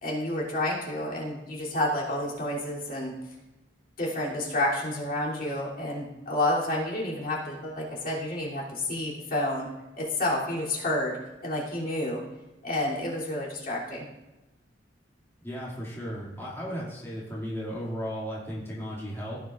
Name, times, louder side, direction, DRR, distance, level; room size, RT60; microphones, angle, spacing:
voice 1, 0.0-3.1 4.0-9.7 10.0-11.1 11.4-12.2 12.6-14.1, left 1 dB, 55° left, -5 dB, 3.0 m, -29 dB
voice 2, 15.4-19.4, equal, 15° left, -7 dB, 2.3 m, -35 dB
16.5 x 8.9 x 2.5 m, 1.0 s
head